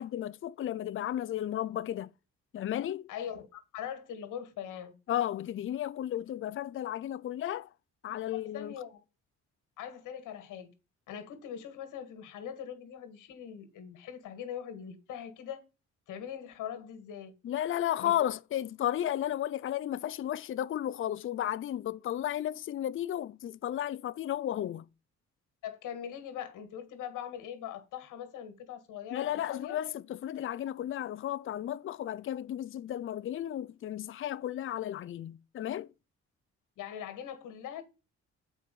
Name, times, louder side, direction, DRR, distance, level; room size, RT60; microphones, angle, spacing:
voice 1, 0.0-2.1 2.5-3.1 5.1-7.7 8.0-8.7 17.4-24.8 29.1-35.9, left 11 dB, 45° left, 0.5 m, -33 dB
voice 2, 3.1-4.9 8.3-9.0 9.8-10.7 11.1-15.6 16.1-17.3 18.0-18.1 25.6-29.8 36.8-37.8, left 9 dB, 90° left, 1.8 m, -42 dB
7.5 x 4.7 x 6.9 m
cardioid pair, 90°, 30 cm